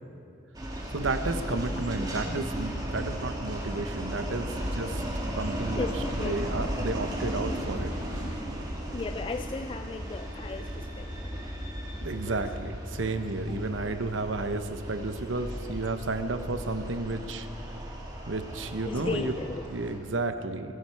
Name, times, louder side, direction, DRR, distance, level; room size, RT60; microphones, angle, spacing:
sound 1, 0.5-20.0, equal, 20° right, 2.1 m, -35 dB
voice 1, 0.9-5.0 5.4-5.9 6.2-7.9 12.0-17.5 18.3-19.3 19.7-20.8, right 3 dB, 90° right, 9 dB, 0.9 m, -32 dB
voice 2, 2.0-2.5 3.1-3.2 4.2-4.3 4.8-4.9 5.7-6.4 6.8-6.9 8.9-11.5 12.2-12.5 13.5-13.7 15.9-16.0 18.8-19.6, left 4 dB, 25° left, 8 dB, 0.3 m, -37 dB
22.0 x 11.5 x 4.6 m, 2.6 s
head